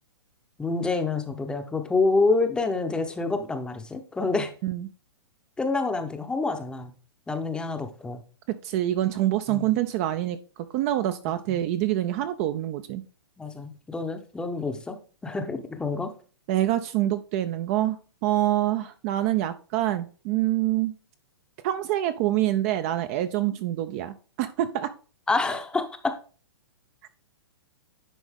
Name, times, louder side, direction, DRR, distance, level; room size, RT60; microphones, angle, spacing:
voice 1, 0.6-4.5 5.6-6.9 7.3-8.2 9.5-9.7 11.5-11.6 13.4-15.0 15.2-16.1 25.3-26.1, left 3 dB, 5° left, 7 dB, 0.7 m, -27 dB
voice 2, 8.5-10.4 10.7-13.0 16.5-20.9 21.6-24.9, right 13 dB, 30° right, 11 dB, 0.4 m, -26 dB
10.0 x 4.0 x 3.5 m, 0.38 s
hypercardioid pair, 150°, 14 cm